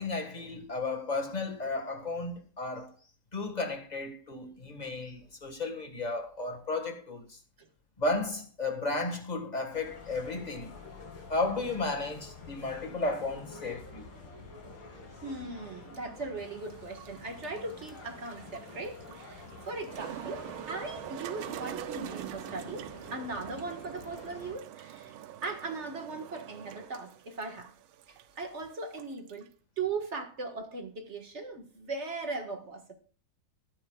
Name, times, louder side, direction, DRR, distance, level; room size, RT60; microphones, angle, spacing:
voice 1, 0.0-2.9 3.3-7.4 8.0-10.7 11.3-14.1 14.6-14.8, left 2 dB, 20° left, 1.7 m, -34 dB
sound 1, 9.7-24.5, left 3 dB, 90° left, 3.2 m, -48 dB
voice 2, 15.2-25.2 25.4-27.7 28.1-29.5 29.8-32.9, right 3 dB, 35° right, 1.9 m, -39 dB
sound 2, 16.4-29.5, right 12 dB, 85° right, 1.5 m, -44 dB
20.5 x 10.0 x 2.4 m
omnidirectional pair, 2.2 m